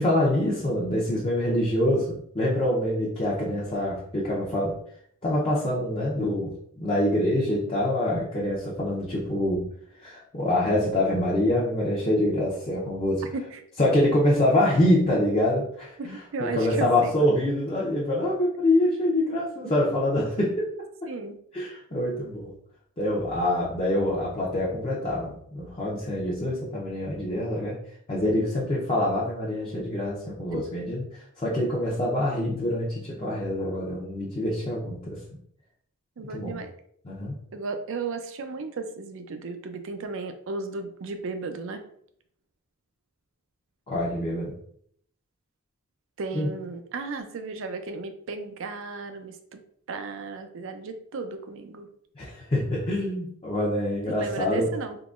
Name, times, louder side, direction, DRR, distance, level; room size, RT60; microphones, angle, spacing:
voice 1, 0.0-4.8 5.2-9.7 10.0-13.2 13.8-20.7 21.5-22.5 23.0-27.8 28.1-35.2 36.3-36.6 37.0-37.3 43.9-44.5 46.3-46.5 52.2-54.7, left 1 dB, 30° left, -5 dB, 0.6 m, -25 dB
voice 2, 13.3-13.6 16.0-17.3 21.1-21.4 30.5-30.6 36.2-36.7 37.5-41.8 46.2-49.6 49.9-51.9 54.1-55.0, right 3 dB, 65° right, 8 dB, 0.5 m, -35 dB
3.8 x 2.9 x 2.4 m, 0.65 s
head